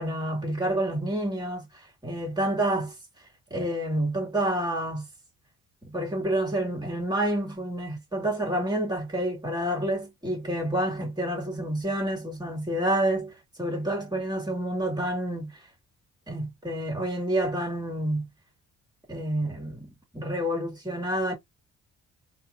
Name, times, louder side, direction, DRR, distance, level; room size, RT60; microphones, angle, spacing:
voice 1, 0.0-1.7 2.0-2.9 3.5-5.1 5.8-13.3 13.6-15.5 16.3-18.3 19.1-19.9 20.1-21.3, right 1 dB, 15° right, 2.8 m, -28 dB
4.1 x 2.9 x 2.8 m
cardioid pair, 90°, 30 cm